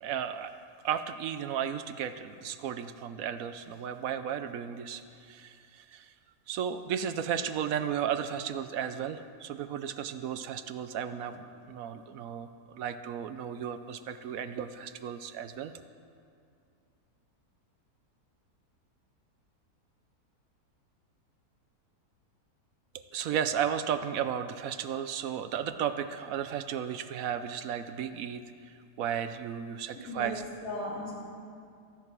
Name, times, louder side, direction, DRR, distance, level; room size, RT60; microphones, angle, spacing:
voice 1, 0.0-0.5 0.8-6.1 6.5-15.7 23.1-30.3, right 8 dB, 70° right, 10 dB, 1.0 m, -34 dB
voice 2, 30.0-31.1, left 1 dB, 85° left, -7 dB, 4.4 m, -37 dB
14.0 x 11.0 x 6.0 m, 2.4 s
omnidirectional pair, 1.6 m